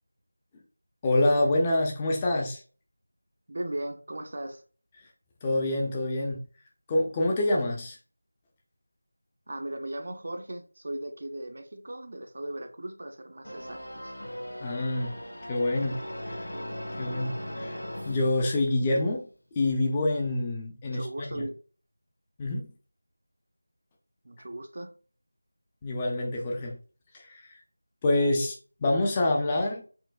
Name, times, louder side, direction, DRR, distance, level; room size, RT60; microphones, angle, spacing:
voice 1, 1.0-2.6 5.4-6.4 6.9-8.0 14.6-15.1 15.5-16.0 16.2-16.4 17.0-19.2 19.5-21.4 22.4-22.7 25.8-26.8 27.1-27.4 28.0-28.6 28.8-29.8, left 1 dB, 15° left, 0.4 m, -26 dB
voice 2, 3.5-4.6 9.5-14.2 20.8-21.6 24.2-24.9, right 1 dB, 45° right, 0.4 m, -37 dB
sound 1, 13.4-19.1, equal, 65° left, 1.5 m, -39 dB
4.4 x 2.1 x 2.4 m
figure-of-eight pair, 175°, 0 cm